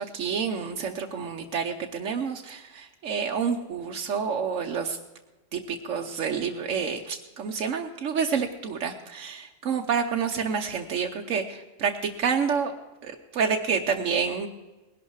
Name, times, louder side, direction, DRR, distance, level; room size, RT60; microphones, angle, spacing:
voice 1, 0.0-5.0 5.5-12.7 13.0-14.5, right 6 dB, 85° right, 3 dB, 1.2 m, -28 dB
19.5 x 11.0 x 4.7 m, 1.1 s
omnidirectional pair, 1.3 m